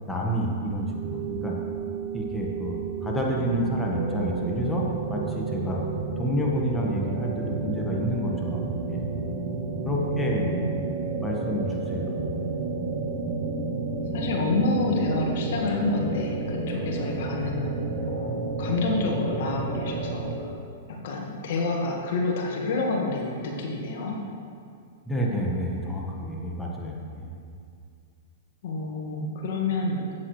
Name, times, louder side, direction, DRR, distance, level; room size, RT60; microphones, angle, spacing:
voice 1, 0.1-1.6 2.1-5.8 6.2-8.6 8.9-9.0 9.8-10.5 11.0-12.2 25.1-27.3, equal, 10° left, -2 dB, 1.5 m, -29 dB
sound 1, 0.5-20.4, right 4 dB, 55° right, 1.5 m, -31 dB
voice 2, 9.8-10.8 14.1-20.5 20.9-24.2 28.6-30.0, left 3 dB, 60° left, 0 dB, 1.7 m, -28 dB
13.0 x 8.8 x 3.3 m, 2.4 s
hypercardioid pair, 110°, 0 cm